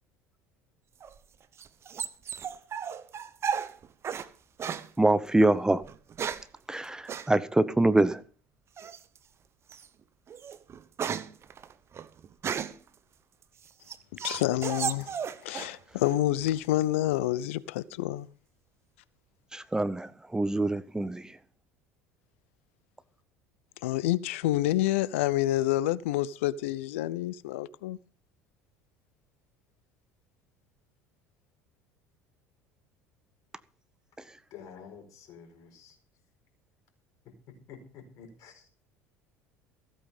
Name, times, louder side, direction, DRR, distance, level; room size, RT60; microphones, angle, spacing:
sound 1, 1.0-4.3 4.6-4.9 5.8-6.6 7.1-7.3 8.8-9.2 9.7-9.9 10.3-12.9 13.4-15.8 16.0-16.7, right 7 dB, 40° right, 1.0 m, -35 dB
voice 1, 5.0-5.8 6.7-8.2 19.5-21.3, right 2 dB, 10° right, 0.7 m, -25 dB
voice 2, 14.2-15.1 15.4-18.3 23.8-28.0, left 15 dB, 75° left, 0.6 m, -28 dB
voice 3, 34.5-36.0 37.2-38.7, left 6 dB, 55° left, 4.7 m, -49 dB
15.5 x 8.7 x 5.5 m
hypercardioid pair, 70°, 7 cm